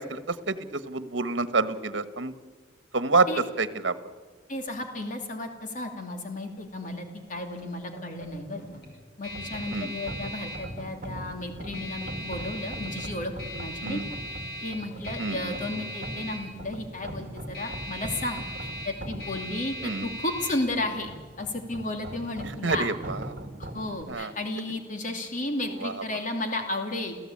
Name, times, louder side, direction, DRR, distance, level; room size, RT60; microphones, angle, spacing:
voice 1, 0.0-2.3 2.9-3.3 3.6-3.9 9.7-9.9 13.8-14.0 15.2-15.6 19.8-20.1 22.6-23.2 24.1-24.3 25.8-25.9, right 3 dB, 80° right, 12 dB, 1.4 m, -27 dB
voice 2, 4.5-8.6 9.2-14.0 14.6-21.1 21.4-22.9 23.6-27.2, left 2 dB, 45° left, 4 dB, 2.6 m, -33 dB
sound 1, 6.5-23.3, equal, 60° left, 6.0 m, -41 dB
sound 2, 9.3-24.0, right 1 dB, 50° right, 2.2 m, -41 dB
29.0 x 16.0 x 8.7 m, 1.5 s
head